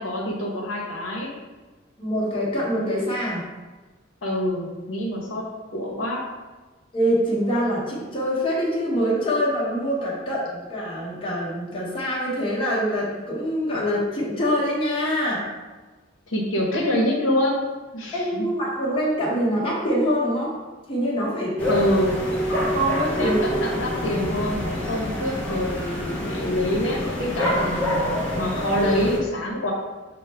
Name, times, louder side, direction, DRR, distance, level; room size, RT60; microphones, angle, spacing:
voice 1, 0.0-1.3 4.2-5.4 5.7-6.3 16.3-17.6 17.9-18.5 21.7-22.2 23.2-29.7, left 1 dB, 75° left, -3 dB, 0.8 m, -26 dB
voice 2, 2.0-3.5 6.9-15.4 18.1-20.5 20.9-21.7 22.5-23.4 26.3-26.4, equal, 30° left, -6 dB, 1.0 m, -24 dB
sound 1, 21.6-29.2, equal, 5° left, 0.7 m, -26 dB
6.1 x 2.1 x 3.3 m, 1.3 s
head